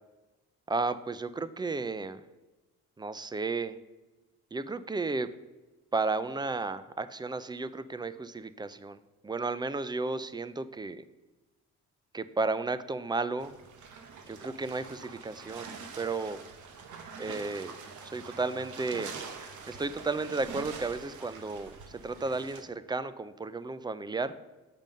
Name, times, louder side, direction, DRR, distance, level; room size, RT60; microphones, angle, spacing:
voice 1, 0.7-2.2 3.0-3.8 4.5-5.3 5.9-11.0 12.1-13.6 14.3-16.4 17.2-17.8 18.0-19.1 19.7-24.3, right 3 dB, 15° right, 14 dB, 0.4 m, -33 dB
sound 1, 13.4-22.6, right 5 dB, 75° right, 1.1 m, -45 dB
7.5 x 5.3 x 5.2 m, 1.2 s
cardioid pair, 90°, 30 cm